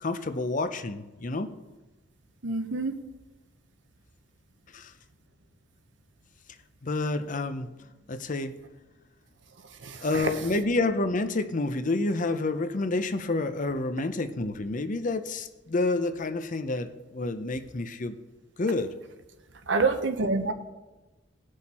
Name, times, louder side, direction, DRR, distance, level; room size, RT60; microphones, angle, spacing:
voice 1, 0.0-1.5 4.7-4.9 6.8-7.7 8.1-8.5 10.0-18.2 18.6-18.9, left 2 dB, 45° left, 10 dB, 0.7 m, -29 dB
voice 2, 2.4-2.9 9.8-10.4 19.7-20.5, right 3 dB, 70° right, 8 dB, 1.0 m, -27 dB
18.5 x 6.4 x 4.3 m, 1.1 s
head